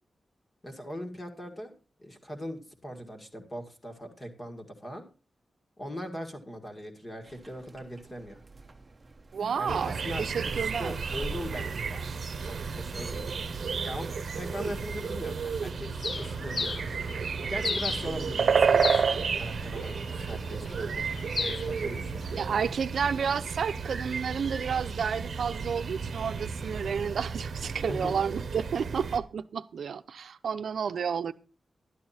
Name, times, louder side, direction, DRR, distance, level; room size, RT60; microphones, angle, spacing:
voice 1, 0.6-1.7 2.0-5.0 5.8-8.4 9.6-13.3 13.8-16.7 17.5-22.3 27.9-28.1, equal, 20° left, 1.9 m, -40 dB
sound 1, 7.2-15.7, right 3 dB, 25° right, 0.8 m, -46 dB
voice 2, 9.3-11.0 22.4-31.3, right 6 dB, 80° right, 0.6 m, -31 dB
sound 2, 9.7-29.2, right 5 dB, 60° right, 0.9 m, -32 dB
Bird, 16.0-22.7, left 4 dB, 45° left, 0.6 m, -37 dB
12.0 x 11.5 x 4.3 m
wide cardioid pair, 175°, 0 cm